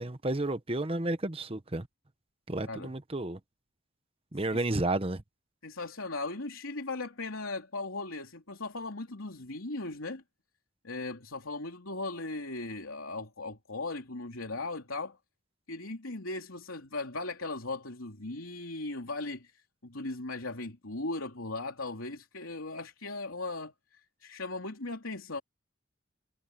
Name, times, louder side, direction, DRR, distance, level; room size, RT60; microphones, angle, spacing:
voice 1, 0.0-1.9 2.5-3.4 4.3-5.2, right 2 dB, 30° right, 1.1 m, -31 dB
voice 2, 5.6-10.2 10.8-15.2 15.7-25.4, left 2 dB, 85° left, 3.3 m, -38 dB
head